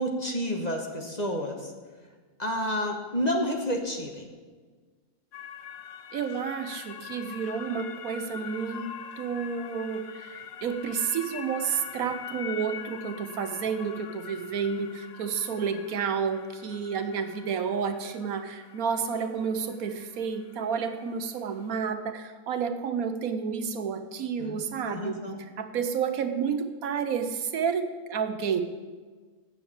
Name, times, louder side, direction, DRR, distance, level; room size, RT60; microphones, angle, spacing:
voice 1, 0.0-1.7 2.4-4.2 24.4-25.4, equal, 30° left, 2 dB, 1.2 m, -30 dB
sound 1, 5.3-21.7, left 8 dB, 60° left, 0.7 m, -44 dB
voice 2, 6.1-25.2 25.6-28.6, right 6 dB, 75° right, 9 dB, 1.2 m, -30 dB
8.8 x 7.1 x 8.5 m, 1.4 s
omnidirectional pair, 1.5 m